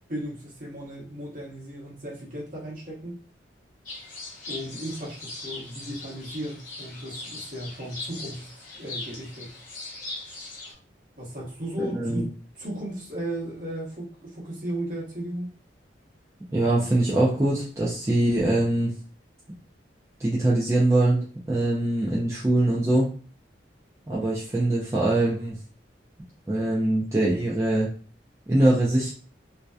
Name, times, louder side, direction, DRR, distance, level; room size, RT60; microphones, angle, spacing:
voice 1, 0.1-3.1 4.5-8.5 8.8-9.5 11.2-12.2 12.6-15.5, right 1 dB, 50° right, -6 dB, 1.1 m, -35 dB
sound 1, 3.9-10.7, left 2 dB, 45° left, 0.9 m, -40 dB
voice 2, 11.8-12.3 16.5-18.9 20.2-21.2 21.5-23.1 24.1-25.5 26.5-27.9 28.5-29.1, right 1 dB, 15° right, -6 dB, 0.4 m, -23 dB
2.6 x 2.2 x 2.3 m, 0.40 s
head